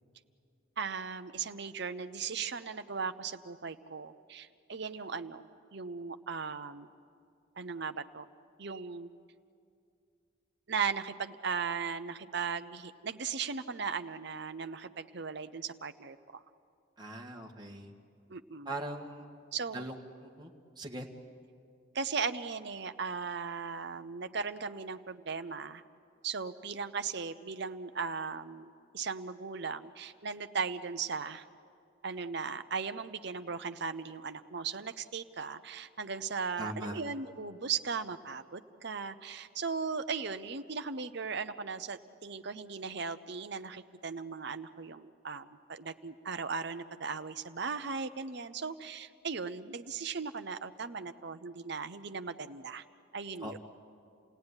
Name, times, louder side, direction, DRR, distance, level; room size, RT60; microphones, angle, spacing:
voice 1, 0.8-5.4 5.7-6.9 7.6-8.3 8.6-9.1 10.7-16.2 18.3-18.7 19.5-19.8 21.9-25.8 26.2-31.4 32.0-52.8 53.1-53.6, right 5 dB, 55° right, 9 dB, 0.8 m, -37 dB
voice 2, 17.0-17.9 18.7-19.3 19.7-20.0 20.4-21.1 36.6-37.0 53.4-53.6, right 1 dB, 20° right, 0 dB, 1.8 m, -40 dB
29.0 x 17.5 x 9.8 m, 2.5 s
head